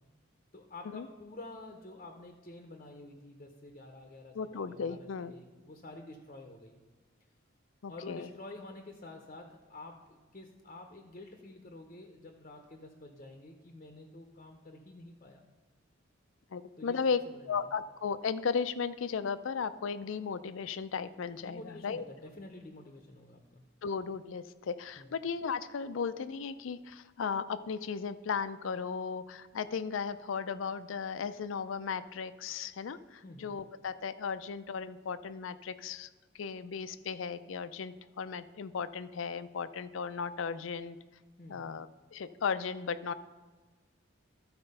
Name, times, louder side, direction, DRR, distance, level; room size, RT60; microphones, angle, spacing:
voice 1, 0.5-6.8 7.9-15.4 16.8-17.0 17.3-17.5 21.4-23.6 25.0-25.1 33.2-33.5 41.4-41.7, left 2 dB, 35° left, 3 dB, 0.7 m, -49 dB
voice 2, 4.3-5.3 7.8-8.3 16.5-22.0 23.8-36.1 36.3-41.0 41.5-43.1, left 6 dB, 75° left, 14 dB, 0.4 m, -36 dB
13.0 x 4.4 x 5.4 m, 1.4 s
head